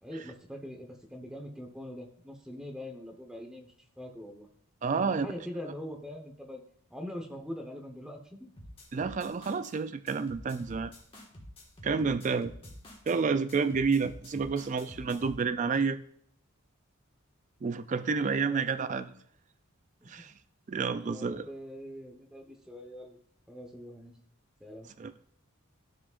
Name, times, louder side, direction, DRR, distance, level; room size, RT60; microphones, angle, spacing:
voice 1, 0.0-4.5 4.9-6.6 6.9-8.5 18.4-19.1 20.0-20.2 20.9-23.2 23.5-24.1 24.6-24.9, left 1 dB, 5° right, 3 dB, 1.0 m, -43 dB
voice 2, 4.8-5.3 8.9-10.9 11.8-12.5 13.1-16.0 17.6-19.1 20.1-20.3 20.7-21.5 25.0-25.1, right 5 dB, 35° right, 11 dB, 0.3 m, -29 dB
sound 1, 8.6-9.7 10.1-13.2 13.5-15.4, left 1 dB, 25° left, 1.7 m, -48 dB
13.5 x 4.9 x 2.5 m, 0.65 s
head